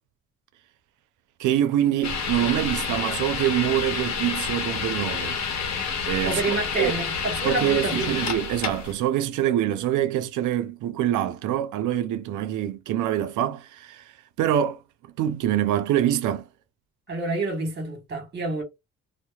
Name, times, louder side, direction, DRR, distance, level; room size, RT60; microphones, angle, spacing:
voice 1, 1.4-5.4 6.1-6.9 7.4-14.1 14.4-14.8 15.2-16.5, right 11 dB, 85° right, 0.5 m, -25 dB
sound 1, 2.0-8.9, left 6 dB, 60° left, 0.8 m, -29 dB
voice 2, 6.2-8.2 17.1-18.6, right 2 dB, 35° right, 1.3 m, -28 dB
2.7 x 2.0 x 2.3 m
cardioid pair, 90°, 30 cm